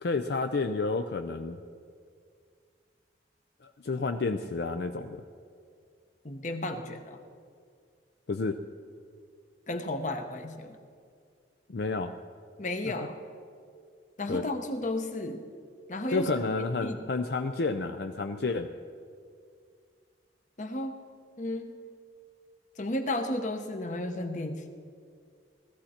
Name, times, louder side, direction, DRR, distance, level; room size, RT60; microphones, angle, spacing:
voice 1, 0.0-1.6 3.6-5.2 8.3-8.6 11.7-12.1 12.9-13.0 14.3-14.5 16.1-18.7, left 3 dB, 65° left, 7 dB, 0.5 m, -30 dB
voice 2, 6.2-7.2 9.7-10.8 12.6-13.2 14.2-15.4 15.9-16.5 16.8-17.0 20.6-21.0 21.4-21.7 22.8-24.7, left 1 dB, 40° left, 7 dB, 1.0 m, -33 dB
17.0 x 14.5 x 4.3 m, 2.2 s
head